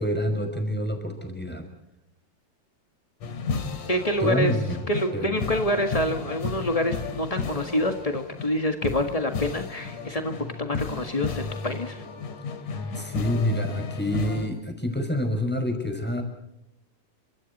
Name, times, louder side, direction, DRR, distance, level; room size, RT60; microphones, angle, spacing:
voice 1, 0.0-1.6 4.2-4.8 5.1-5.4 13.0-16.2, equal, 5° left, 5 dB, 5.4 m, -27 dB
sound 1, 3.2-14.5, left 5 dB, 65° left, 3.9 m, -33 dB
voice 2, 3.9-4.5 4.9-12.0, left 1 dB, 45° left, 6 dB, 0.4 m, -27 dB
29.5 x 25.5 x 4.2 m, 0.84 s
omnidirectional pair, 3.8 m